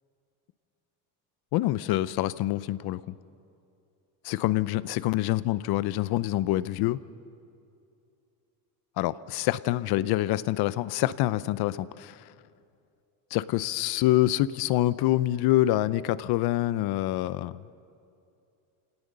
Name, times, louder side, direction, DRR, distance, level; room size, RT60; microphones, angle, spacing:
voice 1, 1.5-3.0 4.2-7.0 9.0-12.3 13.3-17.6, left 15 dB, 60° left, 17 dB, 0.7 m, -26 dB
28.0 x 18.0 x 6.7 m, 2.6 s
cardioid pair, 130°, 43 cm